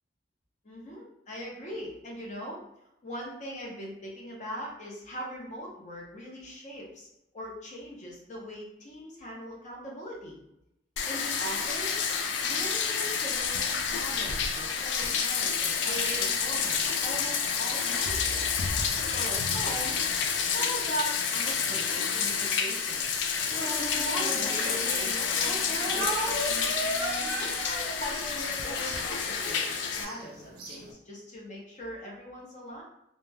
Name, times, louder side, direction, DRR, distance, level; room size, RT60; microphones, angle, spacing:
voice 1, 0.6-2.6 3.0-7.1 7.3-10.4 11.0-12.0 12.4-18.4 19.1-19.9 20.5-23.1 23.6-26.1 27.2-32.8, equal, 40° left, -2 dB, 0.7 m, -40 dB
Bathtub (filling or washing), 11.0-30.0, left 6 dB, 70° left, 0.3 m, -29 dB
sound 1, 15.8-30.9, right 2 dB, 55° right, 0.5 m, -45 dB
Speech, 23.5-25.0 25.7-29.7, right 1 dB, ahead, 0.7 m, -36 dB
2.2 x 2.1 x 3.3 m, 0.86 s
head